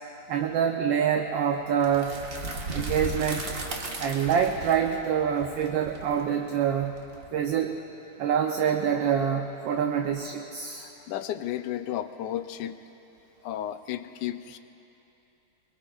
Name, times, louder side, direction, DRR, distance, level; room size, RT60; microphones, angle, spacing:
voice 1, 0.3-2.2 2.7-3.5 4.0-6.9 7.3-7.8 8.2-10.9, right 8 dB, 70° right, 3 dB, 1.3 m, -26 dB
sound 1, 1.8-7.6, right 2 dB, 45° right, 1.5 m, -36 dB
voice 2, 10.8-12.7 13.4-14.6, left 11 dB, 80° left, 10 dB, 0.9 m, -33 dB
24.0 x 22.5 x 2.4 m, 2.9 s
omnidirectional pair, 2.4 m